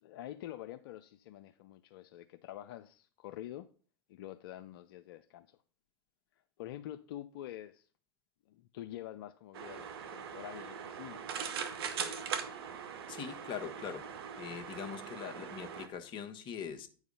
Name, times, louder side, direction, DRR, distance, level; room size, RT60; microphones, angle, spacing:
voice 1, 0.0-3.7 4.1-5.6 6.6-7.9 8.5-11.2, left 13 dB, 70° left, 0.5 m, -46 dB
sound 1, 9.5-15.9, right 7 dB, 75° right, 1.3 m, -41 dB
voice 2, 13.1-14.1 14.4-16.9, left 7 dB, 40° left, 1.3 m, -42 dB
9.5 x 4.8 x 5.4 m
hypercardioid pair, 100°, 13 cm